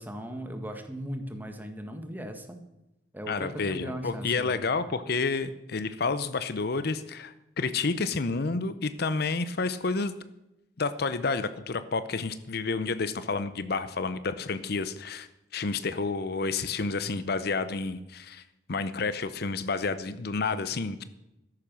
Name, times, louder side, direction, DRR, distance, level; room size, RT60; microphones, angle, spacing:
voice 1, 0.0-2.6 3.1-4.7, equal, 10° right, 6 dB, 1.7 m, -38 dB
voice 2, 3.3-10.1 10.8-18.4 18.7-21.0, left 4 dB, 60° left, 13 dB, 0.7 m, -30 dB
13.5 x 11.0 x 6.2 m, 0.92 s
head